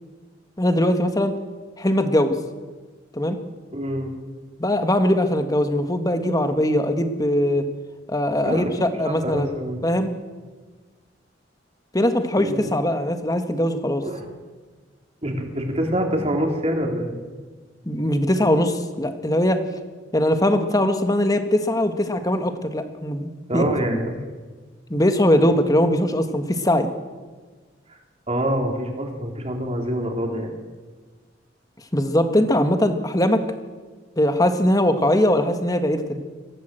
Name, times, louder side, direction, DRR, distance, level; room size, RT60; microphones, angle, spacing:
voice 1, 0.6-1.3 1.8-2.3 3.1-3.4 4.6-7.6 8.1-9.5 9.8-10.1 11.9-14.0 17.8-19.6 20.1-23.6 23.9-24.0 24.9-26.9 31.9-33.4 34.2-36.2, left 1 dB, 20° left, 7 dB, 1.6 m, -21 dB
voice 2, 3.7-4.1 8.4-9.9 12.4-12.7 14.0-14.3 15.2-17.1 23.5-24.1 27.9-28.0 28.3-30.5, equal, 35° right, 2 dB, 3.7 m, -26 dB
23.0 x 16.5 x 7.8 m, 1.4 s
head